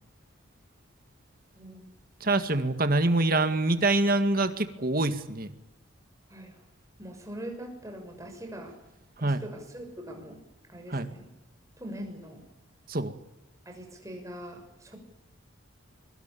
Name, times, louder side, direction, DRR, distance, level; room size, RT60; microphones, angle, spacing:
voice 1, 1.5-1.9 6.3-6.6 7.0-8.7 9.2-10.4 10.7-11.2 11.8-12.4 13.6-15.0, right 1 dB, 15° right, 3 dB, 6.3 m, -42 dB
voice 2, 2.2-5.5 9.2-9.4 10.9-11.1 12.9-13.1, right 2 dB, 45° right, 9 dB, 2.0 m, -25 dB
25.5 x 23.0 x 7.0 m, 0.93 s
head